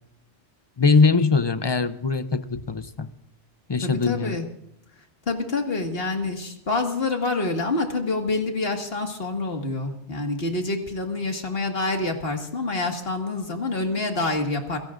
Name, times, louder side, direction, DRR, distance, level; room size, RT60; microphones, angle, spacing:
voice 1, 0.8-3.1 3.7-4.4, left 4 dB, 30° left, 11 dB, 0.5 m, -21 dB
voice 2, 3.8-4.5 5.3-14.8, left 3 dB, 55° left, 3 dB, 2.2 m, -27 dB
28.5 x 17.0 x 2.5 m, 0.78 s
omnidirectional pair, 1.2 m